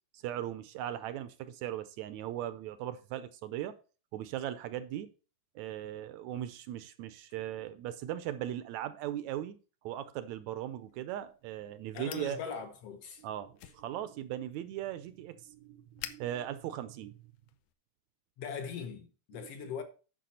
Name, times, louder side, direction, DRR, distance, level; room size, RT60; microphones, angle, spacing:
voice 1, 0.1-3.7 4.1-5.1 5.6-9.6 9.8-12.4 13.2-17.2 19.3-19.5, right 12 dB, 75° right, 1.8 m, -38 dB
sound 1, 10.6-17.7, left 12 dB, 90° left, 2.3 m, -52 dB
voice 2, 11.9-13.2 18.4-19.8, left 6 dB, 65° left, 1.7 m, -40 dB
10.0 x 6.0 x 4.2 m
omnidirectional pair, 3.6 m